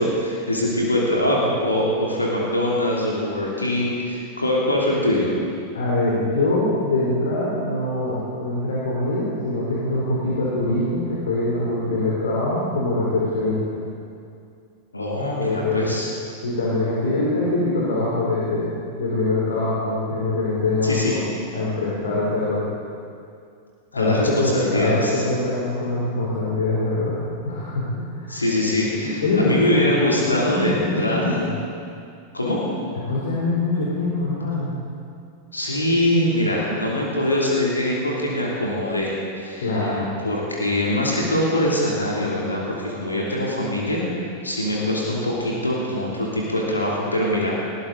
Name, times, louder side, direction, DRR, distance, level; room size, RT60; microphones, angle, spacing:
voice 1, 0.0-5.3 14.9-16.1 20.8-21.2 23.9-25.2 28.3-31.4 32.3-32.6 35.5-40.0 40.2-44.0 44.4-47.6, left 1 dB, 80° left, -4 dB, 2.9 m, -23 dB
voice 2, 5.7-13.8 15.4-15.9 16.4-21.2 21.5-22.6 23.9-27.2 27.4-28.4 29.0-29.9 30.3-31.5 33.1-34.7 39.6-40.1, left 2 dB, 65° left, -6 dB, 3.4 m, -23 dB
20.0 x 17.0 x 4.0 m, 2.4 s
figure-of-eight pair, 90°, 0 cm